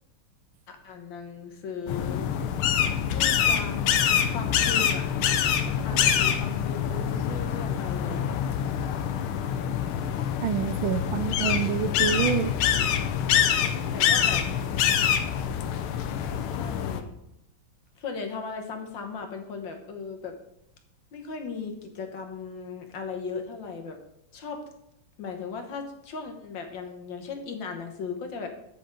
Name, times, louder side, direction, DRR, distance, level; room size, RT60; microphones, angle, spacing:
voice 1, 0.7-2.3 3.1-3.9 4.3-5.2 5.8-8.3 13.9-14.4 16.4-17.1 18.0-20.4 21.1-24.0 24.3-24.6 25.2-28.5, left 5 dB, 65° left, 4 dB, 1.8 m, -37 dB
sound 1, 1.9-17.0, left 8 dB, 85° left, 1.6 m, -25 dB
voice 2, 10.4-12.5, right 8 dB, 80° right, 12 dB, 1.3 m, -27 dB
7.8 x 6.4 x 5.3 m, 0.81 s
omnidirectional pair, 2.3 m